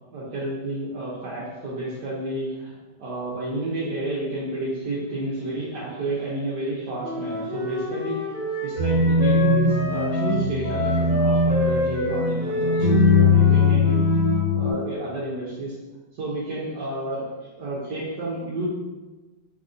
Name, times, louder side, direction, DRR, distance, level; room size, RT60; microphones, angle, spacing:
voice 1, 0.1-2.7 3.0-8.4 8.6-14.0 14.5-15.7 16.1-18.6, right 1 dB, 70° right, -6 dB, 1.3 m, -30 dB
Wind instrument woodwind instrument, 7.0-14.4, left 3 dB, 40° left, 1.0 m, -28 dB
sound 1, 8.8-14.7, left 3 dB, 45° right, 1.9 m, -20 dB
3.9 x 3.4 x 2.4 m, 1.2 s
omnidirectional pair, 2.0 m